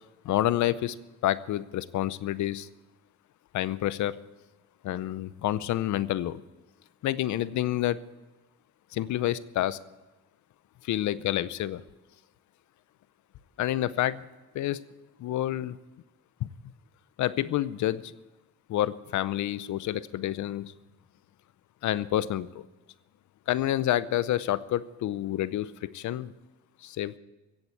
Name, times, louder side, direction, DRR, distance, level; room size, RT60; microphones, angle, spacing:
voice 1, 0.2-1.0 1.2-2.7 3.5-4.2 4.8-6.4 7.0-8.0 8.9-9.8 10.8-11.8 13.6-14.3 14.5-14.8 15.2-15.8 16.4-16.5 17.2-18.1 18.7-20.7 21.8-22.6 23.5-26.3 26.8-27.2, left 13 dB, 75° left, 17 dB, 0.7 m, -28 dB
16.0 x 7.9 x 8.2 m, 1.1 s
cardioid pair, 90°, 30 cm